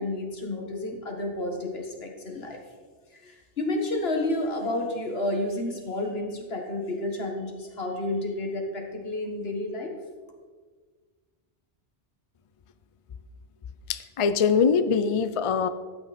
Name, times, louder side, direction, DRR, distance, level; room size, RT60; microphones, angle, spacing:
voice 1, 0.0-2.6 3.1-9.9, left 1 dB, 65° left, 2 dB, 1.9 m, -30 dB
voice 2, 13.9-15.7, left 6 dB, 50° left, 12 dB, 0.4 m, -23 dB
13.0 x 9.0 x 4.2 m, 1.5 s
omnidirectional pair, 1.1 m